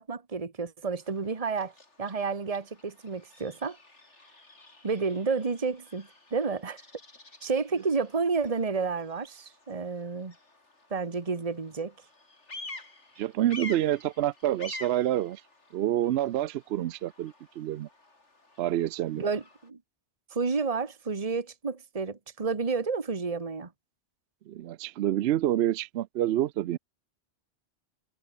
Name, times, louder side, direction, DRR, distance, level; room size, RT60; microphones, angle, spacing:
voice 1, 0.0-3.8 4.8-6.8 7.4-10.3 10.9-11.9 19.2-19.8 20.3-23.7, right 4 dB, 30° right, 1.5 m, -30 dB
Bird vocalization bird call bird song, 0.9-19.7, left 2 dB, 85° left, 4.3 m, -49 dB
voice 2, 13.2-15.4 15.7-17.9 18.6-19.2 24.5-26.8, right 13 dB, 70° right, 0.8 m, -28 dB
omnidirectional pair, 1.2 m